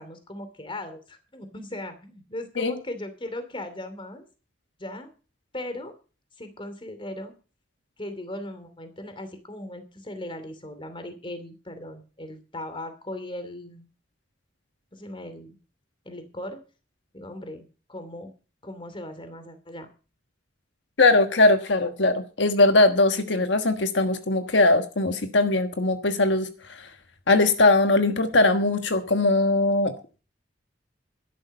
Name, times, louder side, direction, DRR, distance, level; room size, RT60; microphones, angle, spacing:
voice 1, 0.0-4.2 4.8-5.1 5.5-5.9 6.4-7.3 8.0-13.9 14.9-15.5 16.0-16.6 17.1-18.3 18.6-19.9, left 1 dB, 30° left, 9 dB, 2.7 m, -38 dB
voice 2, 21.0-26.5 27.3-29.9, left 2 dB, 75° left, 7 dB, 1.4 m, -20 dB
12.5 x 11.5 x 5.5 m, 0.35 s
head